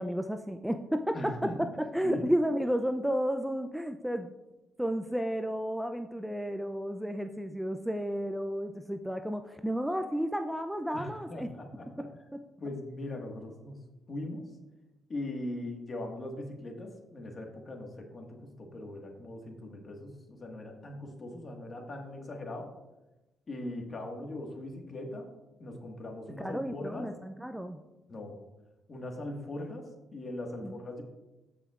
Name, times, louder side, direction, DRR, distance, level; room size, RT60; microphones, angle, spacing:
voice 1, 0.0-4.3 4.8-11.5 12.0-12.1 26.4-27.8 30.6-30.8, equal, 5° right, 7 dB, 0.4 m, -32 dB
voice 2, 1.1-1.7 2.0-2.2 10.9-12.1 12.6-13.8 14.1-14.5 15.1-22.7 23.5-25.3 25.6-27.1 28.1-28.4 28.9-31.0, left 1 dB, 40° left, 2 dB, 1.6 m, -40 dB
15.0 x 5.6 x 2.4 m, 1.0 s
cardioid pair, 90°, 0 cm